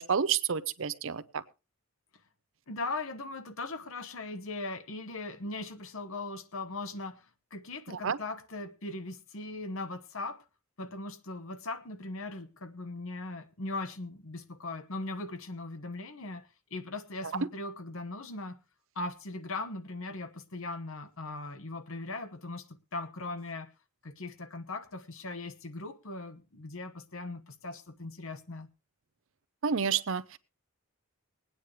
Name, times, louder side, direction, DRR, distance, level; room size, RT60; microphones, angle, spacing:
voice 1, 0.0-1.4 8.0-8.2 29.6-30.4, right 7 dB, 60° right, 0.6 m, -29 dB
voice 2, 2.7-7.2 7.5-10.4 10.8-18.6 18.9-23.7 24.0-28.7, left 2 dB, 65° left, 1.1 m, -39 dB
21.5 x 9.4 x 3.3 m
head